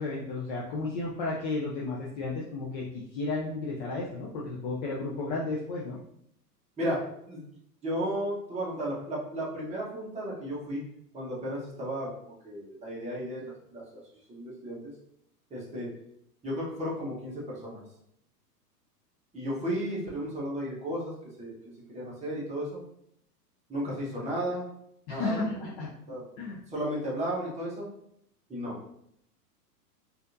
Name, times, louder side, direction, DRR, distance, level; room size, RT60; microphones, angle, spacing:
voice 1, 0.0-2.8 3.1-6.0 25.1-25.9 26.4-26.6, left 3 dB, 30° left, -4 dB, 0.4 m, -33 dB
voice 2, 6.8-7.4 7.8-10.8 11.1-12.1 12.4-13.8 14.3-14.9 15.5-15.9 16.4-17.8 19.3-21.1 21.4-21.5 21.9-22.8 23.7-24.6 25.1-25.5 26.1-26.2 26.7-27.9 28.5-28.8, equal, 15° right, -6 dB, 1.1 m, -34 dB
4.0 x 2.7 x 2.6 m, 0.74 s
hypercardioid pair, 105°, 48 cm